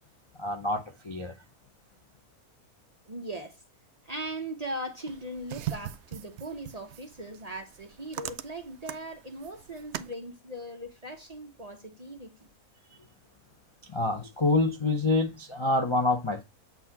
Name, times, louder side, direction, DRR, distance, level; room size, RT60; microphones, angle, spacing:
voice 1, 0.3-1.4 13.8-16.4, left 2 dB, 35° left, 0.5 m, -27 dB
voice 2, 3.0-3.6 4.0-12.3, right 1 dB, 35° right, 0.7 m, -39 dB
sound 1, 5.1-10.1, right 12 dB, 65° right, 0.7 m, -40 dB
8.1 x 2.8 x 5.7 m
omnidirectional pair, 1.6 m